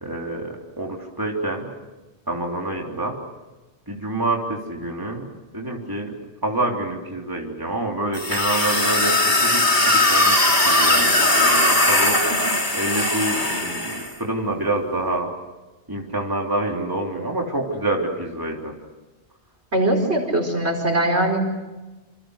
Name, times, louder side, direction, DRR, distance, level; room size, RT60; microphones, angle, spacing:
voice 1, 0.0-1.7 2.3-3.2 3.9-6.1 6.4-12.2 12.7-15.3 15.9-18.7, right 2 dB, 20° right, 0 dB, 3.5 m, -27 dB
sound 1, 8.1-14.1, left 1 dB, 40° left, 3.8 m, -19 dB
voice 2, 19.7-21.4, right 1 dB, 70° right, 3 dB, 5.3 m, -21 dB
28.0 x 27.5 x 6.5 m, 1.1 s
omnidirectional pair, 1.2 m